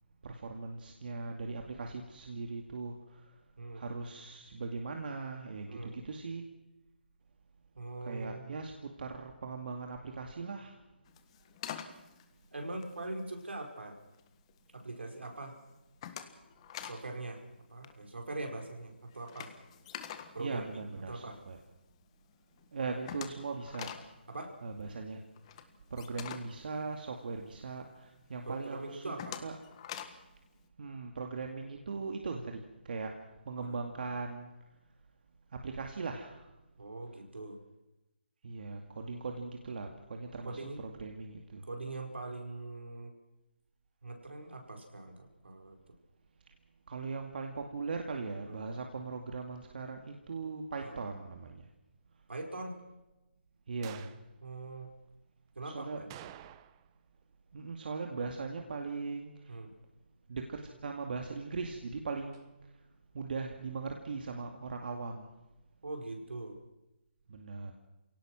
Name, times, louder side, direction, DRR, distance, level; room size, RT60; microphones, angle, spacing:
voice 1, 0.2-3.3 3.7-6.5 8.0-10.8 20.4-21.6 22.7-23.9 24.6-25.2 25.9-29.1 29.4-29.5 30.8-32.6 32.8-33.2 33.5-34.5 35.5-36.5 38.4-41.7 46.9-51.7 53.7-54.1 55.6-56.0 57.5-59.6 60.3-62.5 63.1-65.3 67.3-67.7, right 4 dB, 55° right, 3 dB, 2.3 m, -39 dB
voice 2, 5.7-6.0 7.8-8.6 12.5-14.0 14.7-15.6 16.8-17.4 17.7-19.5 20.3-20.7 21.1-21.4 24.3-24.6 28.4-29.4 33.6-33.8 36.8-37.6 40.4-40.8 41.7-43.1 44.0-45.8 48.5-48.6 50.8-51.0 52.3-52.7 54.4-54.9 55.6-56.1 59.5-59.7 65.8-66.6, right 2 dB, 80° right, 3 dB, 5.2 m, -42 dB
sound 1, 11.1-13.6 14.0-14.6 15.0-15.3 15.6-17.1 17.3-17.5 17.8-21.5 21.9-22.0 22.3-22.4 22.6-27.6 28.0-28.1 28.6-30.3, left 9 dB, 30° left, 1.6 m, -46 dB
sound 2, 53.8-54.3 56.1-57.0 57.2-57.3 62.3-62.5, right 13 dB, 25° right, 0.9 m, -50 dB
28.0 x 18.0 x 6.1 m, 1.0 s
figure-of-eight pair, 150°, 6 cm